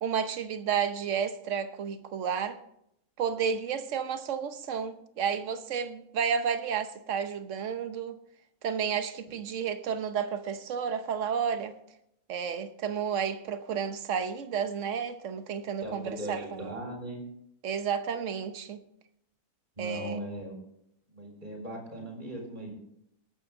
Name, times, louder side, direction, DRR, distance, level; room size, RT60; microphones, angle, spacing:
voice 1, 0.0-2.6 3.2-8.1 8.6-11.7 12.3-16.7 17.6-18.8 19.8-20.2, right 7 dB, 55° right, 1.2 m, -31 dB
voice 2, 15.8-17.2 19.8-20.5 21.1-22.7, right 1 dB, 30° right, 4.3 m, -38 dB
19.5 x 8.9 x 3.7 m
omnidirectional pair, 1.7 m